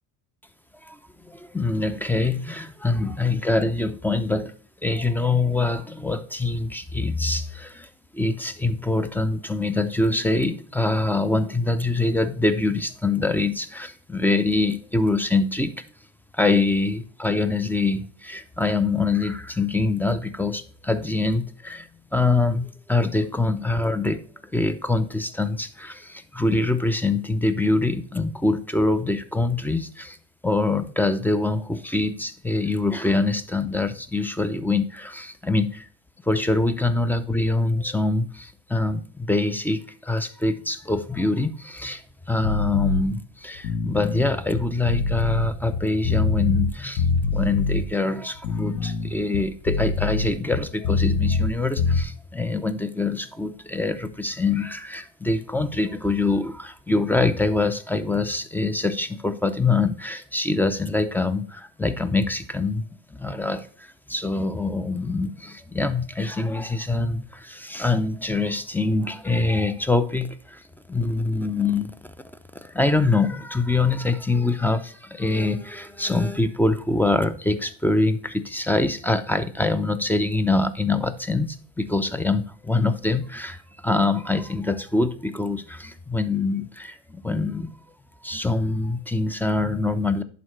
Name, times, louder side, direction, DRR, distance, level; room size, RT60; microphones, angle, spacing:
voice 1, 1.2-4.5 4.8-15.7 16.3-24.2 24.5-30.2 30.4-35.9 36.3-42.0 42.3-62.8 63.1-70.6 70.9-72.1 72.5-87.7 88.2-90.2, left 3 dB, 5° left, 0.5 m, -24 dB
sound 1, 42.4-43.0 43.5-46.7 47.0-47.8 48.3-51.5 51.8-52.0, left 4 dB, 60° left, 1.2 m, -24 dB
11.0 x 4.0 x 3.2 m
supercardioid pair, 95°, 41 cm